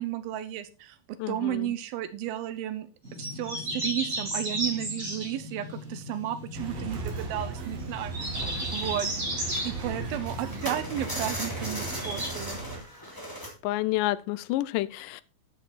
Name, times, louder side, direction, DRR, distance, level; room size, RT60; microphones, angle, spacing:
voice 1, 0.0-2.9 3.2-9.1 9.6-12.6, right 12 dB, 85° right, 2.7 m, -33 dB
voice 2, 1.2-1.7 13.6-15.2, left 17 dB, 80° left, 2.0 m, -29 dB
sound 1, 3.0-12.3, right 1 dB, 20° right, 3.5 m, -35 dB
sound 2, 5.7-5.8 6.1-6.3 6.9-8.1 8.4-13.5, equal, 5° left, 2.5 m, -39 dB
sound 3, 6.5-12.8, right 4 dB, 55° right, 2.5 m, -37 dB
10.0 x 7.2 x 4.1 m
omnidirectional pair, 4.2 m